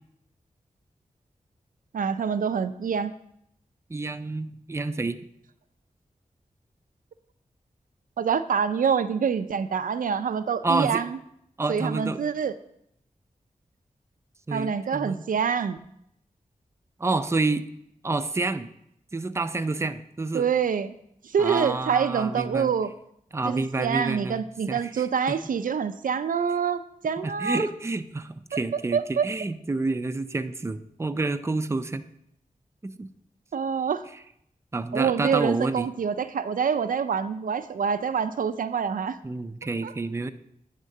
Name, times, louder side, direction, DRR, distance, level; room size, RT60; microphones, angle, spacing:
voice 1, 1.9-3.1 8.2-11.2 11.7-12.5 14.5-15.8 20.3-20.9 21.3-22.9 23.5-27.6 28.9-29.3 33.5-34.0 34.9-39.2 39.8-39.9, right 6 dB, 80° right, 11 dB, 0.4 m, -26 dB
voice 2, 3.9-5.2 10.6-11.0 11.6-12.2 14.5-15.2 17.0-17.6 18.0-18.7 19.1-20.5 21.4-22.7 23.3-24.4 24.7-25.4 27.2-32.0 32.8-33.1 34.7-35.9 39.2-40.3, right 3 dB, 20° right, 10 dB, 0.4 m, -29 dB
9.2 x 3.6 x 6.5 m, 0.74 s
wide cardioid pair, 70°, 14 cm